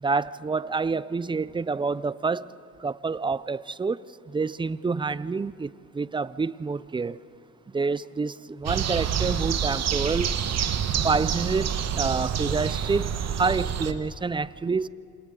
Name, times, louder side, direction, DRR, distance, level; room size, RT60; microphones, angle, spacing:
voice 1, 0.0-2.5 2.8-4.0 4.3-7.2 7.7-10.3 11.0-11.7 11.9-14.9, right 4 dB, 15° right, 18 dB, 0.4 m, -27 dB
sound 1, 8.7-13.9, right 8 dB, 60° right, 1.2 m, -27 dB
28.0 x 27.5 x 3.8 m, 2.6 s
cardioid pair, 90°, 30 cm